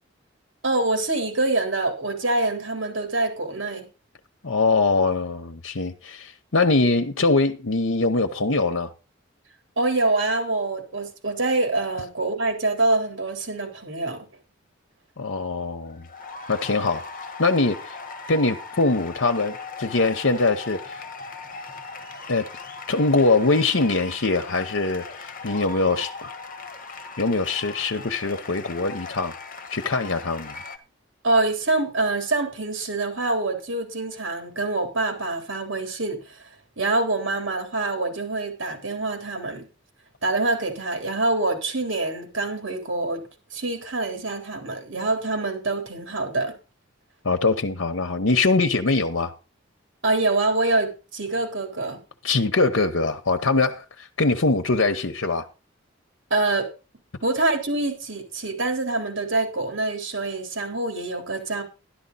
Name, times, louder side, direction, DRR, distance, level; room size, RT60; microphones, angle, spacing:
voice 1, 0.6-3.9 9.8-14.3 31.2-36.4 36.8-39.7 40.2-43.2 43.5-46.5 50.0-52.0 56.3-56.7 57.2-61.6, right 2 dB, 70° right, 3.9 m, -25 dB
voice 2, 4.4-8.9 15.2-16.1 16.5-17.1 17.4-17.9 18.3-21.0 22.3-22.5 22.9-26.3 27.2-29.3 29.7-30.6 47.2-49.3 52.2-55.5, left 3 dB, 75° left, 1.0 m, -23 dB
sound 1, 15.8-30.8, left 4 dB, 45° left, 1.6 m, -38 dB
12.0 x 12.0 x 4.1 m
head